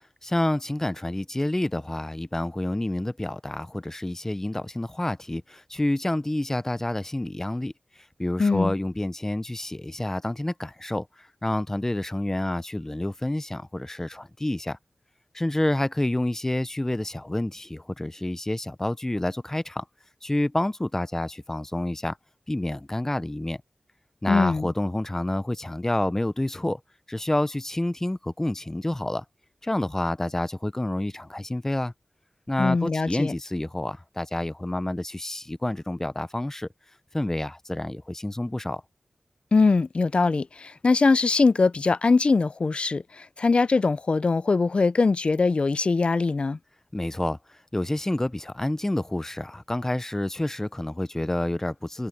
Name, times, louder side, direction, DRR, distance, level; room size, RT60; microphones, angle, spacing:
voice 1, 0.2-14.8 15.3-19.8 20.2-22.2 22.5-23.6 24.2-26.8 27.1-29.2 29.6-31.9 32.5-36.7 37.1-38.8 46.9-52.1, left 1 dB, 20° left, 0.7 m, -28 dB
voice 2, 8.4-8.7 24.3-24.7 32.6-33.3 39.5-46.6, left 4 dB, 60° left, 0.5 m, -22 dB
open air
cardioid pair, 45°, 2 cm